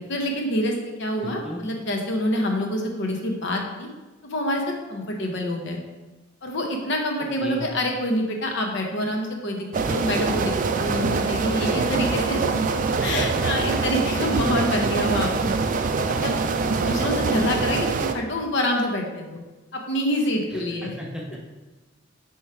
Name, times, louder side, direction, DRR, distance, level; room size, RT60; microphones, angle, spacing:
voice 1, 0.0-3.9 4.2-5.8 6.4-12.4 13.0-15.5 16.0-16.4 16.8-19.4 19.7-21.0, left 1 dB, 60° left, 2 dB, 0.8 m, -26 dB
voice 2, 1.2-1.6 7.4-7.7 11.6-11.9 14.3-14.8 16.8-17.1 20.5-21.4, left 1 dB, 5° right, -2 dB, 0.7 m, -35 dB
sound 1, 9.7-18.1, right 4 dB, 40° right, 0.3 m, -24 dB
6.8 x 3.1 x 4.6 m, 1.2 s
head